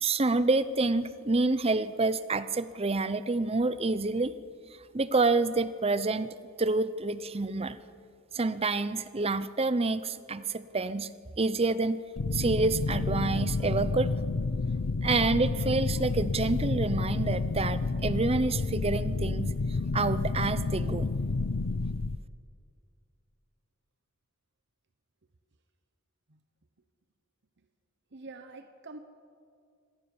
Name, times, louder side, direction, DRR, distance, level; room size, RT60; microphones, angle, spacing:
voice 1, 0.0-4.3 4.9-7.8 8.3-11.1 11.4-12.0 12.3-14.1 15.0-19.5 19.9-21.1, right 3 dB, 30° right, 15 dB, 0.7 m, -28 dB
sound 1, 12.2-22.2, left 3 dB, 80° left, 0.7 m, -30 dB
voice 2, 28.1-29.0, right 3 dB, 60° right, 8 dB, 1.1 m, -46 dB
25.5 x 17.5 x 7.2 m, 2.2 s
head